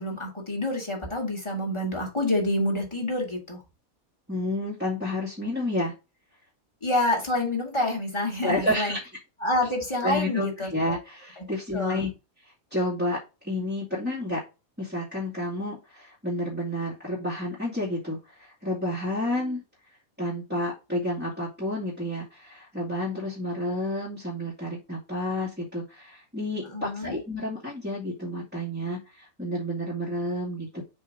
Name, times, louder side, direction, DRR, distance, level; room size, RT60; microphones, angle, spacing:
voice 1, 0.0-3.6 6.8-9.0 9.4-10.7 11.4-11.5 11.7-12.0 26.6-27.2, left 1 dB, 20° left, -1 dB, 2.7 m, -27 dB
voice 2, 4.3-5.9 8.4-9.0 10.0-12.1 12.7-14.4 14.8-19.6 20.2-30.8, left 1 dB, 5° right, -6 dB, 2.4 m, -30 dB
7.3 x 3.8 x 3.8 m, 0.28 s
omnidirectional pair, 1.4 m